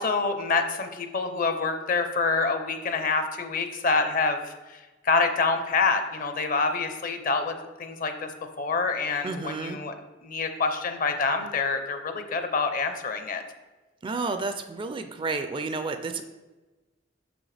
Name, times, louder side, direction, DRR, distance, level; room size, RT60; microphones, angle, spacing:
voice 1, 0.0-4.4 5.0-8.3 8.6-9.9 10.2-13.4, left 4 dB, 50° left, 7 dB, 0.7 m, -26 dB
voice 2, 9.2-9.8 14.0-16.2, right 3 dB, 25° right, 8 dB, 0.4 m, -31 dB
6.6 x 6.1 x 3.3 m, 1.2 s
head